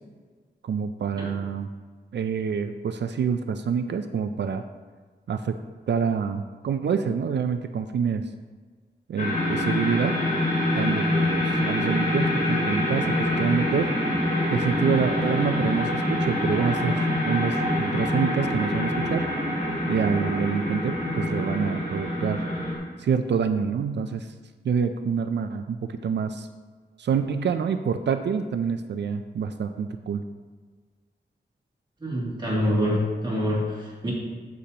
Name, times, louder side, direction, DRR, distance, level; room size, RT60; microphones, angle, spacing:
voice 1, 0.6-1.7 2.1-4.6 5.3-5.6 5.9-8.2 9.1-10.2 10.7-13.9 14.5-19.2 19.9-22.4 23.0-24.3 24.6-26.5 27.0-30.2, right 6 dB, 75° right, 8 dB, 0.4 m, -27 dB
sound 1, 9.2-22.7, left 1 dB, 45° left, 2.4 m, -25 dB
voice 2, 32.0-33.8 34.0-34.1, equal, 25° right, -6 dB, 2.5 m, -25 dB
8.3 x 8.3 x 2.9 m, 1.5 s
wide cardioid pair, 135°, 18 cm